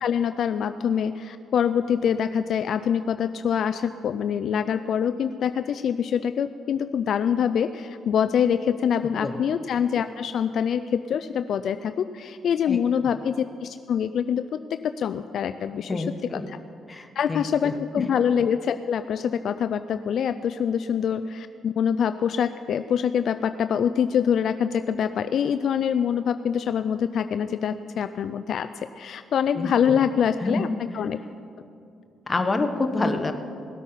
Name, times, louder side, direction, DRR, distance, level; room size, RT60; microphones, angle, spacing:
voice 1, 0.0-14.4 15.0-16.0 16.5-16.6 17.2-30.7 30.9-31.2, left 8 dB, 65° left, 11 dB, 0.4 m, -25 dB
voice 2, 15.9-16.4 16.9-18.1 29.5-30.0 30.4-30.7 32.3-33.3, left 3 dB, 25° left, 6 dB, 1.2 m, -28 dB
18.0 x 8.2 x 5.7 m, 2.5 s
cardioid pair, 90°, 0 cm